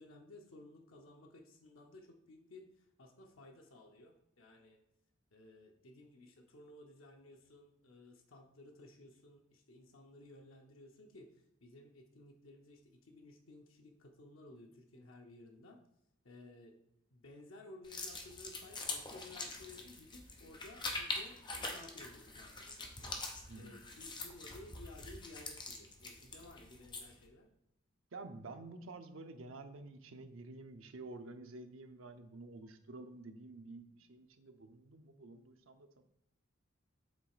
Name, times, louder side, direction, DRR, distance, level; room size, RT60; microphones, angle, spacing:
voice 1, 0.0-4.8 5.3-15.8 16.2-16.7 17.1-23.1 23.5-27.5, left 2 dB, 85° left, 2 dB, 0.9 m, -56 dB
sound 1, 17.8-27.2, left 3 dB, 25° left, 0.9 m, -44 dB
voice 2, 28.1-36.0, right 2 dB, 80° right, 7 dB, 0.7 m, -50 dB
7.5 x 3.2 x 4.9 m, 0.83 s
head